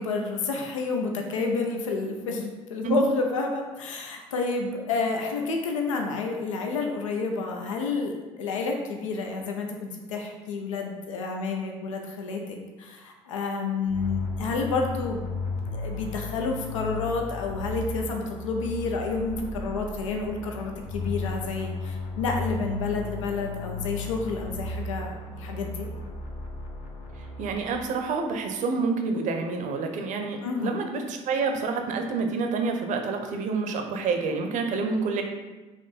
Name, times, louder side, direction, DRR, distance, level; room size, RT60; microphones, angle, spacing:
voice 1, 0.0-15.3 15.7-25.9 30.4-30.7, left 4 dB, 75° left, 2 dB, 0.5 m, -30 dB
sound 1, 13.9-28.0, left 3 dB, 45° left, 0.8 m, -35 dB
voice 2, 27.4-35.2, right 4 dB, 50° right, 5 dB, 0.6 m, -28 dB
4.3 x 2.9 x 4.1 m, 1.2 s
figure-of-eight pair, 55°, 16 cm